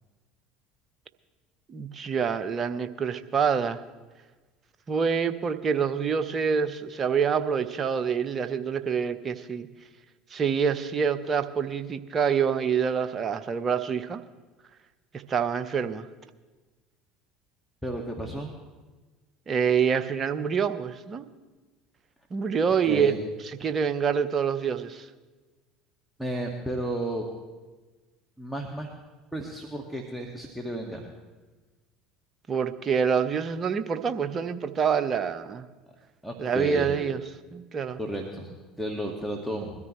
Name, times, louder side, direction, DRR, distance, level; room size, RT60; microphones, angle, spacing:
voice 1, 1.7-3.8 4.9-9.7 10.3-14.2 15.3-16.1 19.5-21.3 22.3-23.1 23.4-25.1 32.5-35.6 36.4-37.2 37.5-38.0, right 6 dB, 35° right, 10 dB, 1.0 m, -26 dB
voice 2, 17.8-18.5 22.9-23.2 26.2-27.3 28.4-28.9 29.3-31.1 36.2-36.9 38.0-39.8, right 1 dB, 5° right, 0 dB, 1.9 m, -33 dB
21.5 x 13.5 x 3.2 m, 1.3 s
hypercardioid pair, 70°, 0 cm